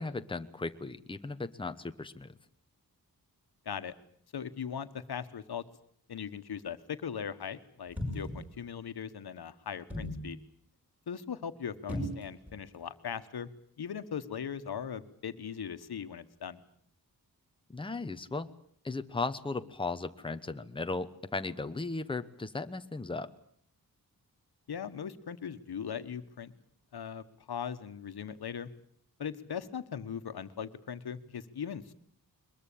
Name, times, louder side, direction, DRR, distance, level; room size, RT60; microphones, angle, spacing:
voice 1, 0.0-2.3 17.7-18.5 18.8-23.3, left 3 dB, 15° left, 9 dB, 1.0 m, -36 dB
voice 2, 4.3-5.6 6.1-10.4 11.1-13.5 13.8-16.6 24.7-26.5 26.9-28.7 29.2-31.9, left 7 dB, 85° left, 11 dB, 1.5 m, -39 dB
sound 1, 7.9-8.5 9.9-10.3 11.9-12.5 12.8-12.9, left 1 dB, 5° right, 7.1 m, -36 dB
22.0 x 21.5 x 8.7 m, 0.63 s
wide cardioid pair, 155°, 37 cm